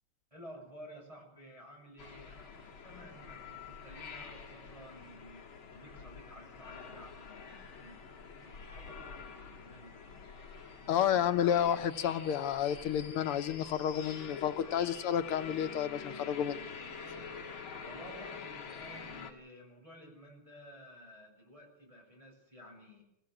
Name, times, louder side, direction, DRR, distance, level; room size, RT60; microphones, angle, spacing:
voice 1, 0.3-5.5 5.7-8.0 8.4-10.2 10.8-11.2 11.7-11.8 17.8-23.0, equal, 15° right, -1 dB, 6.7 m, -53 dB
sound 1, 2.0-19.3, left 5 dB, 65° left, 2.9 m, -47 dB
voice 2, 10.9-16.6, left 9 dB, 85° left, 10 dB, 1.9 m, -31 dB
22.5 x 15.5 x 7.8 m, 0.81 s
omnidirectional pair, 2.4 m